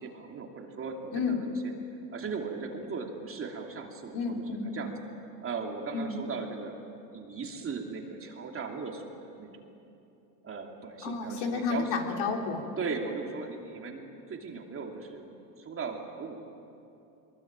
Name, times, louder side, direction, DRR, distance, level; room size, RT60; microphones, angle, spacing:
voice 1, 0.0-1.7 2.1-4.2 4.7-4.9 5.4-6.7 7.1-9.6 10.4-11.9 12.8-16.4, right 5 dB, 25° right, 2 dB, 2.9 m, -38 dB
voice 2, 4.1-4.7 5.9-6.1 11.0-12.6, left 4 dB, 55° left, 2 dB, 3.8 m, -31 dB
23.0 x 21.5 x 9.0 m, 2.8 s
supercardioid pair, 110°, 49 cm